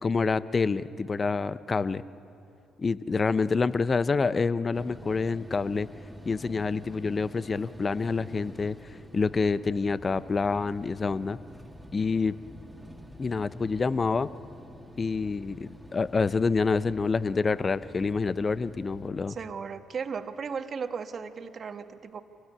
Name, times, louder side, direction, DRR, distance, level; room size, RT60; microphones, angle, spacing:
voice 1, 0.0-2.0 2.8-5.9 6.2-11.4 11.9-12.4 13.2-14.3 15.0-19.4, left 4 dB, 35° left, 16 dB, 0.8 m, -27 dB
sound 1, 4.7-19.1, equal, 5° right, 2.5 m, -48 dB
voice 2, 19.3-22.2, right 6 dB, 45° right, 8 dB, 1.5 m, -36 dB
26.0 x 19.0 x 9.8 m, 2.7 s
hypercardioid pair, 45°, 0 cm